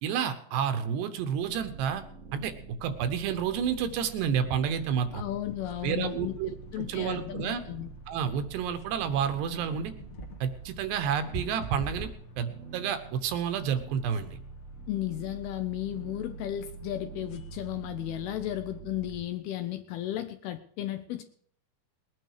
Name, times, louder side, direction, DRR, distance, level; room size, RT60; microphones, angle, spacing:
voice 1, 0.0-2.0 2.3-2.5 2.8-5.2 5.8-6.5 6.8-7.6 8.1-9.9 10.4-12.1 12.4-14.4, right 8 dB, 75° right, 9 dB, 3.1 m, -30 dB
sound 1, 1.4-19.2, right 4 dB, 50° right, 0.8 m, -46 dB
voice 2, 5.1-6.4 6.7-7.9 14.9-21.2, left 13 dB, 80° left, 9 dB, 2.3 m, -34 dB
sound 2, 5.2-18.8, equal, 55° left, 1.8 m, -49 dB
20.5 x 9.4 x 4.9 m, 0.62 s
omnidirectional pair, 5.1 m